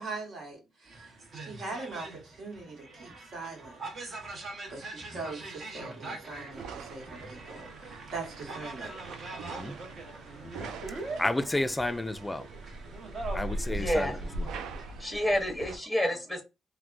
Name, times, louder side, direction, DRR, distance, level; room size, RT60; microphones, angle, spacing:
voice 1, 0.0-3.7 4.7-8.9, right 3 dB, 65° right, 1.2 m, -41 dB
sound 1, 0.9-14.9, right 3 dB, 50° right, 0.9 m, -43 dB
sound 2, 6.5-15.8, right 2 dB, 85° right, 0.4 m, -41 dB
voice 2, 9.4-9.8 10.4-10.7 11.2-12.5 13.3-14.1, left 1 dB, 15° left, 0.3 m, -31 dB
voice 3, 13.7-14.2 14.9-16.4, equal, 5° right, 0.9 m, -29 dB
3.3 x 2.1 x 2.4 m
cardioid pair, 90°, 0 cm